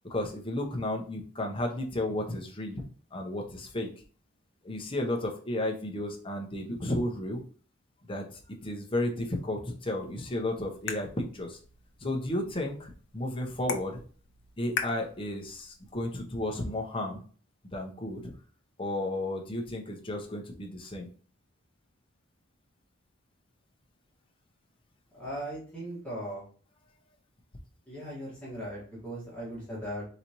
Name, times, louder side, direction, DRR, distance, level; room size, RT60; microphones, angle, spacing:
voice 1, 0.0-2.8 3.1-3.9 4.6-7.4 8.1-11.6 12.0-14.0 14.6-17.2 17.7-18.3 18.8-21.1 28.4-28.6, left 1 dB, 25° left, 1 dB, 0.8 m, -33 dB
sound 1, 10.0-16.0, left 6 dB, 55° left, 0.6 m, -41 dB
voice 2, 25.1-26.4 27.9-30.1, equal, 5° left, -8 dB, 1.7 m, -38 dB
4.2 x 4.0 x 3.0 m, 0.41 s
head